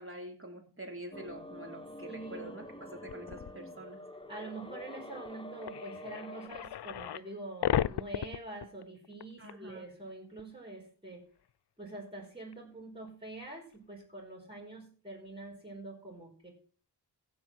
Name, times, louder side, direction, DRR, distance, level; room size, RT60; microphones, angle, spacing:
voice 1, 0.0-4.0 9.4-9.8, right 1 dB, 30° right, 2 dB, 3.2 m, -46 dB
sound 1, 1.1-6.5, left 1 dB, 10° left, 1.3 m, -47 dB
voice 2, 2.0-2.5 4.3-11.2 11.8-16.5, right 2 dB, 10° right, -4 dB, 5.0 m, -45 dB
sound 2, 3.1-3.5 4.8-4.9 5.3-5.4 5.6-7.3 7.6-9.2 9.5-9.6 10.4-10.5 12.5-12.6, left 10 dB, 70° left, 0.5 m, -34 dB
16.0 x 5.4 x 6.0 m, 0.43 s
wide cardioid pair, 45°, 42 cm